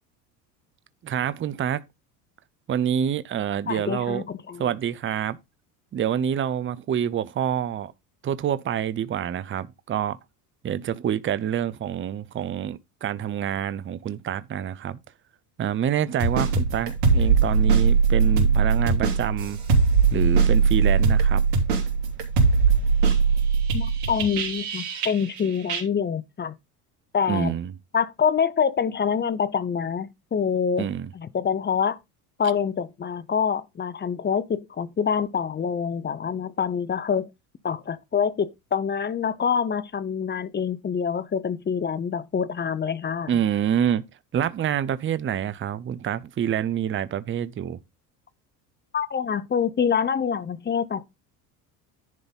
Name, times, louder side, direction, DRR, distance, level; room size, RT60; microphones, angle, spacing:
voice 1, 1.0-1.8 2.7-4.2 4.6-5.4 5.9-7.9 8.2-10.2 10.6-15.0 15.6-19.6 20.1-21.4 27.3-27.7 30.8-31.1 43.3-44.0 44.3-47.8, right 9 dB, 25° right, 0.7 m, -27 dB
voice 2, 3.7-4.7 23.7-26.5 27.1-27.6 27.9-30.9 31.1-32.0 32.4-37.3 37.6-43.4 48.9-51.0, left 7 dB, 20° left, 0.8 m, -26 dB
sound 1, 16.2-25.4 25.7-25.8, right 5 dB, 75° right, 3.0 m, -20 dB
10.5 x 3.9 x 5.4 m
hypercardioid pair, 85°, 47 cm